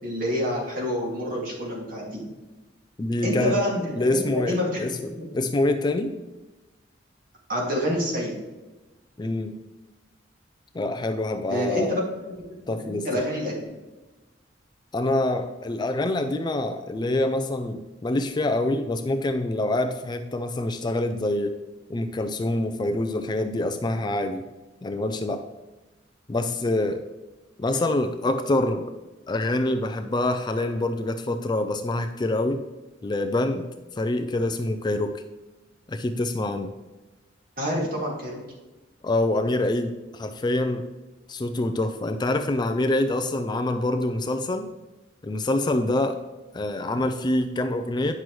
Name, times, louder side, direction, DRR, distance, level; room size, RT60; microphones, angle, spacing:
voice 1, 0.0-2.2 3.2-5.4 7.5-8.3 11.5-12.4 12.7-13.7 37.6-38.4, equal, 50° right, -3 dB, 2.3 m, -28 dB
voice 2, 3.0-3.6 4.0-5.0 5.3-6.2 9.2-9.6 10.7-11.9 12.7-13.3 14.9-21.5 21.9-24.5 24.8-25.4 26.3-27.0 27.6-28.9 29.3-32.6 33.0-33.7 34.0-35.2 35.9-36.7 39.0-40.9 41.3-44.7 45.2-46.2 46.5-48.1, left 2 dB, 25° left, 7 dB, 0.4 m, -26 dB
9.6 x 6.1 x 3.1 m, 1.1 s
head